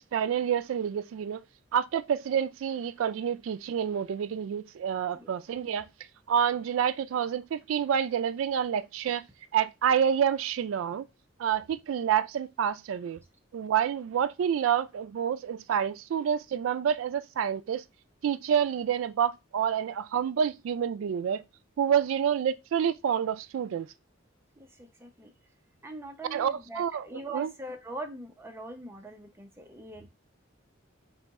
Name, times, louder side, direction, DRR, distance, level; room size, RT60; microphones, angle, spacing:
voice 1, 0.1-1.4 1.7-5.9 6.3-9.2 9.5-11.0 11.4-13.2 13.5-17.8 18.2-21.4 21.8-23.9 26.3-27.0 27.3-27.5, right 8 dB, 80° right, 0.3 m, -28 dB
voice 2, 24.6-25.3 25.8-30.1, right 2 dB, 10° right, 0.6 m, -42 dB
4.2 x 2.9 x 3.5 m
head